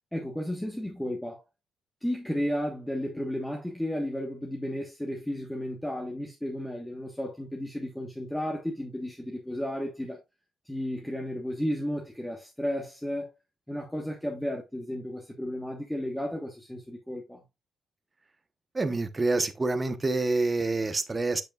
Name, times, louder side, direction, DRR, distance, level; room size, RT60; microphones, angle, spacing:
voice 1, 0.1-1.4 2.0-10.2 10.6-13.3 13.7-17.4, equal, 5° left, 1.3 m, -33 dB
voice 2, 18.7-21.4, right 3 dB, 25° right, 1.0 m, -27 dB
8.1 x 6.7 x 2.4 m
cardioid pair, 90°, 0 cm